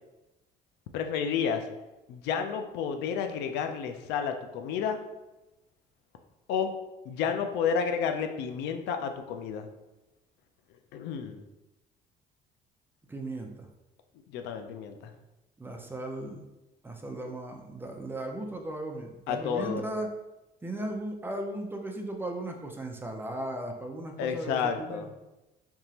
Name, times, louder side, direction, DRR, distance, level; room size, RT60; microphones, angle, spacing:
voice 1, 0.9-1.6 2.1-5.0 6.5-6.7 7.1-9.7 10.9-11.4 14.3-15.1 19.3-19.8 24.2-25.1, left 7 dB, 90° left, 6 dB, 0.4 m, -31 dB
voice 2, 13.1-13.7 15.6-16.4 16.8-20.1 20.6-25.1, right 1 dB, 15° right, 3 dB, 0.5 m, -36 dB
3.6 x 2.9 x 2.8 m, 1.0 s
cardioid pair, 110°, 17 cm